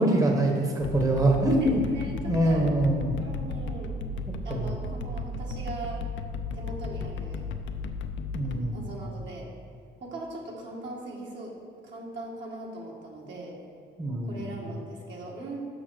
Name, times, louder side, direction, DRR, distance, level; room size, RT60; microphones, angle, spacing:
voice 1, 0.0-1.8 2.2-3.2 4.5-4.8 8.3-8.9 14.0-14.4, right 1 dB, 15° right, 1 dB, 1.0 m, -24 dB
sound 1, 0.8-8.6, left 3 dB, 70° left, 0.6 m, -34 dB
voice 2, 1.6-2.7 3.2-4.0 4.4-6.0 6.5-7.5 8.4-9.5 10.0-11.6 11.8-13.6 14.3-15.6, right 2 dB, 65° right, -3 dB, 1.9 m, -40 dB
6.4 x 5.8 x 6.4 m, 2.2 s
cardioid pair, 90°, 20 cm